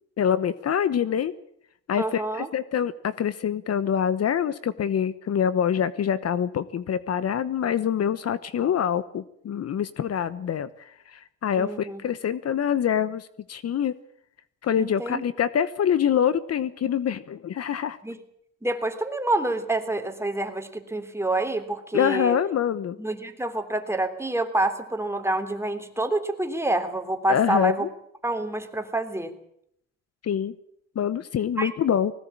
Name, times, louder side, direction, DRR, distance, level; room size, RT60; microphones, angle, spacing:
voice 1, 0.2-1.3 1.9-13.9 14.6-18.0 21.9-23.0 27.3-27.9 30.2-30.5 30.9-32.1, left 8 dB, 55° left, 15 dB, 1.1 m, -25 dB
voice 2, 2.0-2.5 11.5-12.0 14.8-15.2 18.0-18.2 18.6-22.4 23.0-27.9 28.2-29.3 31.6-31.7, right 2 dB, 10° right, 6 dB, 3.4 m, -27 dB
20.5 x 17.5 x 8.7 m, 0.72 s
cardioid pair, 90°, 30 cm